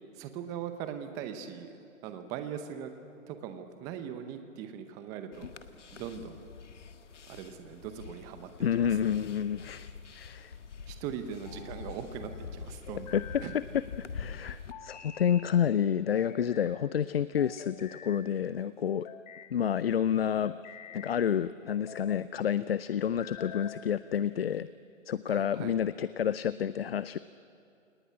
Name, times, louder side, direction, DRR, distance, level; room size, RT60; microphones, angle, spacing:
voice 1, 0.1-1.8 2.0-2.9 3.3-5.5 5.9-6.4 7.3-9.1 10.9-13.5 25.3-25.8, right 9 dB, 10° right, 9 dB, 0.7 m, -40 dB
sound 1, 5.3-14.7, left 6 dB, 65° left, 1.5 m, -45 dB
voice 2, 8.6-10.5 13.1-13.6 14.1-19.1 19.5-20.5 20.9-24.7 25.1-27.2, left 9 dB, 50° left, 16 dB, 0.6 m, -29 dB
sound 2, 9.2-9.9 11.2-12.0 12.9-13.7 14.7-15.5 16.1-16.8 17.4-18.2 18.9-19.5 20.2-21.2 21.7-22.3 23.0-23.8, left 7 dB, 35° left, 1.5 m, -48 dB
28.0 x 19.0 x 9.8 m, 2.6 s
figure-of-eight pair, 145°, 39 cm